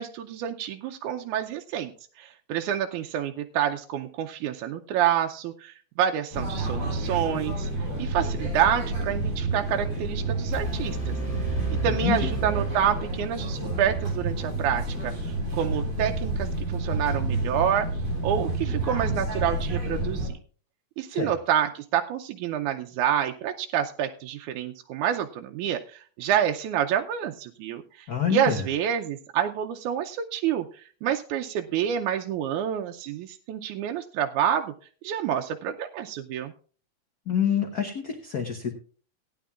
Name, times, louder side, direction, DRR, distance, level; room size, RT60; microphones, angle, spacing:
voice 1, 0.0-1.9 2.2-11.2 11.7-17.9 18.2-20.4 21.0-34.7 35.0-36.5, right 9 dB, 85° right, 4 dB, 2.1 m, -28 dB
sound 1, 6.3-20.3, right 2 dB, 45° right, 5.0 m, -29 dB
sound 2, 10.5-13.5, right 4 dB, 15° left, 2.0 m, -33 dB
voice 2, 11.8-12.4 21.1-21.3 28.1-28.7 37.3-38.7, left 9 dB, 55° left, 3 dB, 1.0 m, -27 dB
18.0 x 10.5 x 2.4 m, 0.41 s
omnidirectional pair, 3.4 m